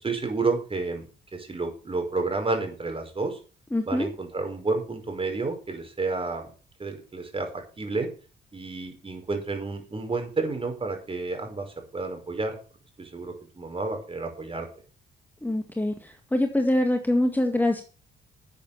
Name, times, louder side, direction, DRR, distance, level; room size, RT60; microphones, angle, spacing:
voice 1, 0.0-3.4 3.8-6.5 6.8-7.5 7.8-8.1 8.5-12.6 13.0-14.7, right 3 dB, 25° right, 4 dB, 5.5 m, -30 dB
voice 2, 3.7-4.1 15.4-15.9 16.3-17.8, left 1 dB, 10° left, 5 dB, 2.0 m, -24 dB
12.5 x 8.3 x 7.1 m, 0.37 s
cardioid pair, 90°, 20 cm